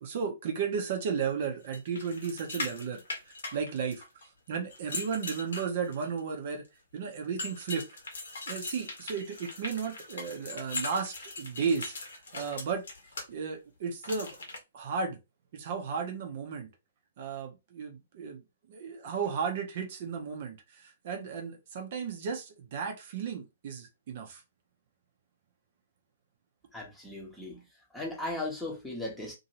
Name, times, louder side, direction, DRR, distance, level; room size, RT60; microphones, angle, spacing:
voice 1, 0.0-4.1 4.5-6.6 6.9-7.8 8.5-12.8 13.3-14.4 14.7-15.2 15.5-16.7 17.2-18.4 18.7-24.4, right 6 dB, 45° right, 0.7 m, -34 dB
sound 1, 1.7-4.2 4.7-6.2 7.4-13.3 14.0-14.6, left 3 dB, 60° left, 1.1 m, -40 dB
voice 2, 26.7-27.6 27.9-29.3, left 2 dB, 5° left, 1.0 m, -37 dB
2.7 x 2.7 x 2.9 m
figure-of-eight pair, 120°, 0 cm